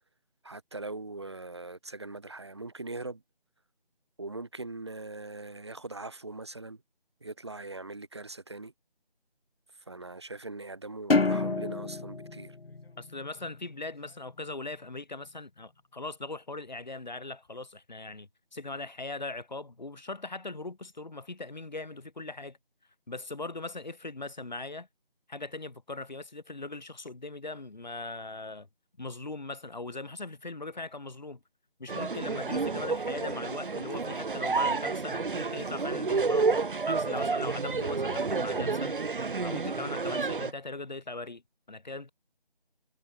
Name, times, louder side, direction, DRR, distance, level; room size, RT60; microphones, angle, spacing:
voice 1, 0.4-3.2 4.2-6.8 7.2-8.7 9.9-12.6, right 2 dB, 30° right, 1.9 m, -41 dB
sound 1, 11.1-13.7, left 3 dB, 85° left, 1.2 m, -28 dB
voice 2, 13.0-22.6 23.1-24.9 25.3-28.7 29.0-31.4 31.8-36.6 36.9-39.0 39.4-41.4 41.7-42.1, left 3 dB, 50° left, 1.8 m, -40 dB
sound 2, 31.9-40.5, right 4 dB, 60° right, 0.7 m, -30 dB
figure-of-eight pair, 175°, 29 cm